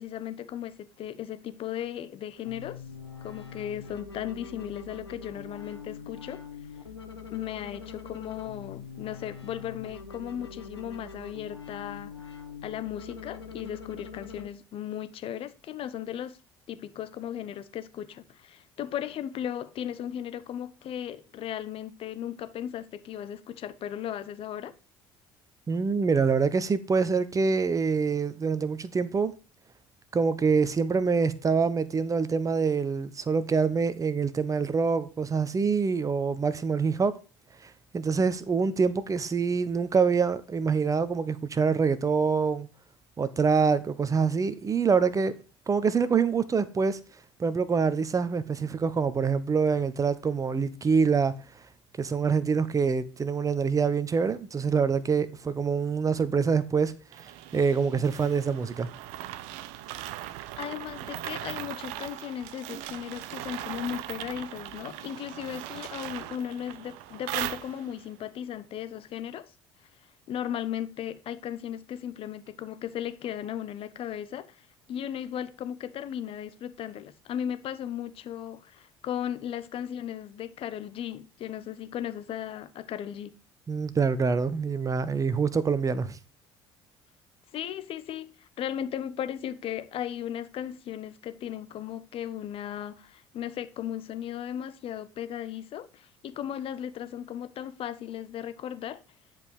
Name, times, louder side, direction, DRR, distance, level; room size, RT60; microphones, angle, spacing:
voice 1, 0.0-2.8 3.2-6.4 7.3-12.3 12.6-16.4 16.7-24.7 60.6-69.5 70.3-74.6 74.9-83.3 87.5-99.0, left 10 dB, 45° left, 1.1 m, -36 dB
sound 1, 2.5-14.5, left 6 dB, 85° left, 1.0 m, -43 dB
voice 2, 25.7-29.3 30.1-37.1 37.6-42.7 43.2-45.3 45.7-47.0 47.4-51.3 52.0-56.9 57.5-58.9 83.7-86.2, right 5 dB, 25° right, 1.1 m, -25 dB
sound 2, 57.1-68.1, right 13 dB, 60° right, 0.7 m, -39 dB
10.5 x 5.4 x 4.8 m
figure-of-eight pair, 55°, 13 cm